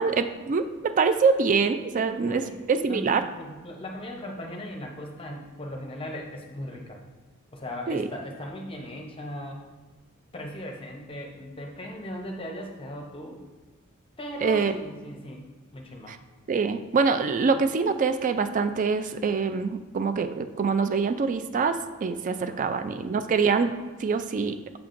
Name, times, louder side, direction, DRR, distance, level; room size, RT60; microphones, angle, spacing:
voice 1, 0.0-3.2 7.9-8.1 14.4-14.7 16.1-16.2 16.5-23.7 24.0-24.6, right 5 dB, 40° right, 9 dB, 0.3 m, -25 dB
voice 2, 2.0-2.6 2.9-7.0 7.5-9.6 10.3-13.4 14.2-16.1 22.4-22.8, left 1 dB, 25° left, 1 dB, 0.7 m, -38 dB
7.2 x 5.8 x 2.5 m, 1.3 s
head